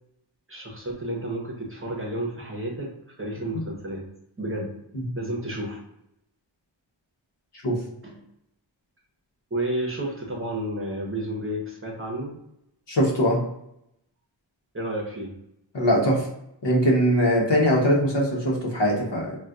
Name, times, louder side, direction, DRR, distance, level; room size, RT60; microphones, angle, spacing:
voice 1, 0.5-2.9 3.2-4.1 4.4-4.8 5.1-5.8 8.0-8.2 9.5-12.4 14.7-15.3, right 1 dB, 25° right, -1 dB, 0.9 m, -31 dB
voice 2, 12.9-13.4 15.7-16.3 16.6-19.4, equal, 65° left, -2 dB, 1.0 m, -21 dB
3.9 x 2.4 x 2.4 m, 0.80 s
wide cardioid pair, 110°, 47 cm